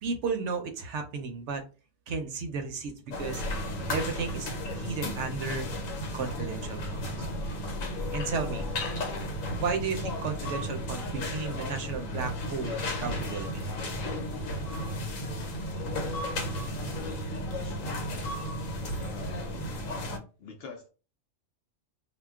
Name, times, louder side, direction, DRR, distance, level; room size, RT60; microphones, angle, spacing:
voice 1, 0.0-1.6 2.1-3.4 3.9-5.7 6.1-7.3 8.1-8.7 9.6-13.7, right 4 dB, 70° right, 5 dB, 0.8 m, -34 dB
sound 1, 3.1-20.2, left 1 dB, 80° left, 1.1 m, -34 dB
voice 2, 19.0-19.7 20.4-20.9, left 4 dB, 65° left, 3 dB, 0.7 m, -44 dB
2.3 x 2.2 x 3.5 m, 0.34 s
omnidirectional pair, 1.3 m